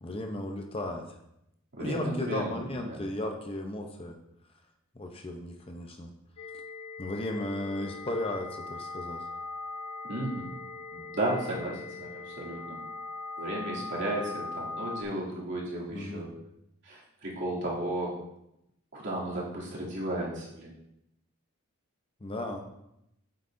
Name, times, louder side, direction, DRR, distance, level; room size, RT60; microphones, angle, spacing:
voice 1, 0.0-1.2 1.8-4.2 4.9-6.1 7.0-9.3 15.9-16.3 22.2-22.6, left 1 dB, 25° left, 3 dB, 0.6 m, -35 dB
voice 2, 1.7-3.0 10.0-10.4 10.9-12.8 13.4-16.3 16.8-18.2 18.9-20.8, right 1 dB, 55° right, -6 dB, 2.6 m, -34 dB
sound 1, 6.4-15.0, left 3 dB, 85° left, 0.7 m, -40 dB
8.4 x 8.1 x 2.6 m, 0.81 s
head